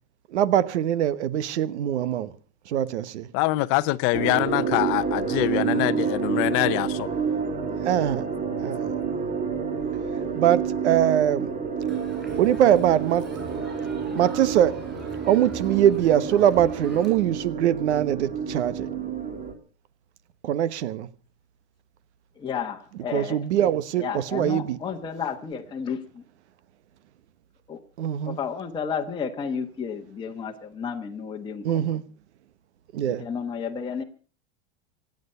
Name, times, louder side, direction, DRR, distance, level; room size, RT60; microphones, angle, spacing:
voice 1, 0.3-2.3 2.7-3.3 7.8-8.3 8.6-8.9 10.4-11.5 12.4-13.3 14.1-14.8 15.2-18.9 20.4-21.1 23.1-24.8 28.0-28.4 31.6-32.0 32.9-33.2, right 10 dB, 85° right, 1.2 m, -22 dB
voice 2, 3.3-7.1, left 19 dB, 40° left, 0.7 m, -24 dB
sound 1, 4.1-19.5, right 6 dB, 25° right, 2.2 m, -29 dB
Crowd, 11.9-17.1, right 1 dB, ahead, 7.8 m, -43 dB
voice 3, 22.4-23.4 24.0-26.2 27.7-27.8 28.2-32.0 33.0-34.0, left 6 dB, 15° left, 1.2 m, -32 dB
25.0 x 9.4 x 5.6 m
supercardioid pair, 155°, 33 cm